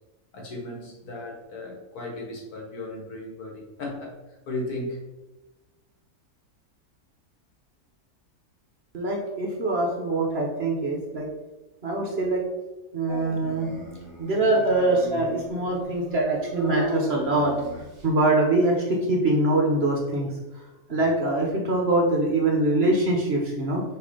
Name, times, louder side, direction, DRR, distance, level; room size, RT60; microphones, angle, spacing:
voice 1, 0.3-5.0, left 2 dB, 70° left, -1 dB, 1.9 m, -36 dB
voice 2, 8.9-11.3 11.8-12.4 12.9-13.7 14.2-17.5 18.0-20.3 20.9-23.8, right 2 dB, 45° right, 0 dB, 1.3 m, -23 dB
Dog, 13.1-18.2, equal, 20° right, 1.2 m, -36 dB
6.4 x 3.5 x 5.0 m, 1.1 s
omnidirectional pair, 1.7 m